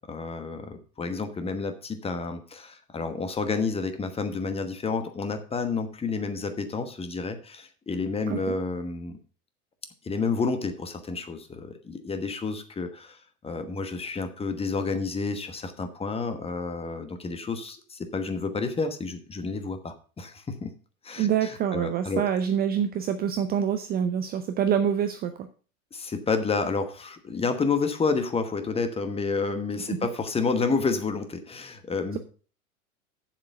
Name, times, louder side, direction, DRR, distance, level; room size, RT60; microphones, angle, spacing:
voice 1, 0.1-9.2 10.0-13.2 13.4-20.7 21.0-22.2 25.9-32.2, left 4 dB, 15° left, 8 dB, 1.2 m, -30 dB
voice 2, 21.2-25.5 29.9-30.1 32.1-32.2, right 8 dB, 20° right, 8 dB, 0.6 m, -26 dB
7.4 x 7.2 x 5.5 m, 0.39 s
figure-of-eight pair, 95°, 43 cm